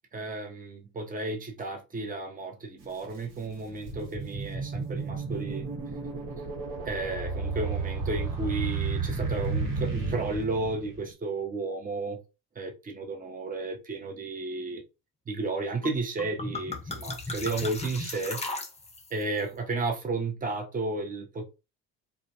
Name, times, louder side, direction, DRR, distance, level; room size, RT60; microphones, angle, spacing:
voice 1, 0.1-5.7 6.8-12.2 12.6-14.8 15.3-18.4 19.1-21.5, right 3 dB, 20° right, 0.7 m, -33 dB
sound 1, 2.8-2.9 3.5-11.1, right 4 dB, 55° right, 1.2 m, -32 dB
sound 2, 15.8-19.2, left 2 dB, 15° left, 0.7 m, -36 dB
2.4 x 2.1 x 2.7 m
supercardioid pair, 80°, 39 cm